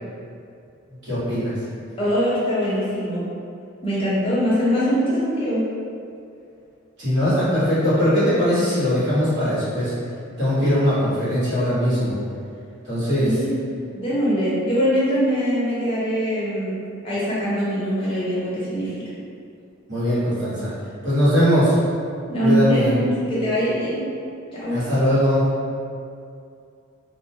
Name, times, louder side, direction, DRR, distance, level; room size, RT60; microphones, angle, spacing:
voice 1, 1.0-1.6 7.0-9.9 10.4-12.2 12.8-13.4 19.9-20.7 21.0-21.7 22.4-22.9 24.7-25.5, equal, 60° right, -12 dB, 1.1 m, -20 dB
voice 2, 2.0-3.3 3.8-5.6 13.2-13.6 13.9-19.0 22.3-24.1 24.5-24.8, equal, 25° left, -9 dB, 0.6 m, -22 dB
2.3 x 2.1 x 2.6 m, 2.4 s
head